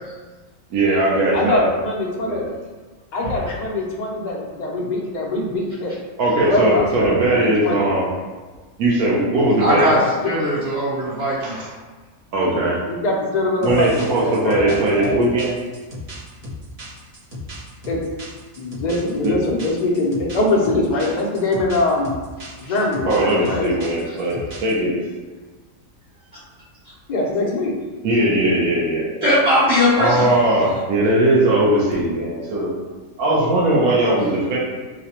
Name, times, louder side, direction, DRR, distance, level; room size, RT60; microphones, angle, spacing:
voice 1, 0.7-1.7 2.1-2.4 6.2-8.1 8.8-9.9 11.4-11.6 12.3-12.8 13.6-15.5 19.2-19.4 23.1-25.0 28.0-29.1 30.0-32.7 33.2-34.6, right 1 dB, 85° right, -5 dB, 1.2 m, -19 dB
voice 2, 1.3-2.4 3.1-5.9 6.4-7.9 9.9-10.6 12.8-13.9 14.2-15.2 17.9-18.0 18.6-22.1 22.6-23.7 27.1-27.7, left 2 dB, 50° left, -2 dB, 0.5 m, -22 dB
voice 3, 9.6-11.7 22.6-22.7 29.2-30.3, equal, 55° right, -11 dB, 1.2 m, -19 dB
sound 1, 13.6-24.8, left 1 dB, 35° right, 0.6 m, -36 dB
4.7 x 2.1 x 2.9 m, 1.3 s
omnidirectional pair, 1.5 m